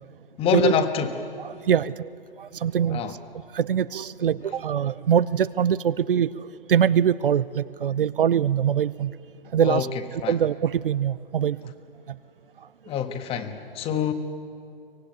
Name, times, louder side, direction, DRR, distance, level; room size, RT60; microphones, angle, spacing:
voice 1, 0.4-1.4 2.9-3.1 9.6-9.9 10.2-10.3 12.9-14.1, left 7 dB, 20° left, 8 dB, 1.5 m, -26 dB
voice 2, 1.4-2.1 2.4-3.2 3.5-9.1 9.5-9.9 10.1-11.7 12.1-12.2, right 8 dB, 65° right, 18 dB, 0.7 m, -23 dB
24.0 x 19.5 x 9.2 m, 2.5 s
figure-of-eight pair, 125°, 29 cm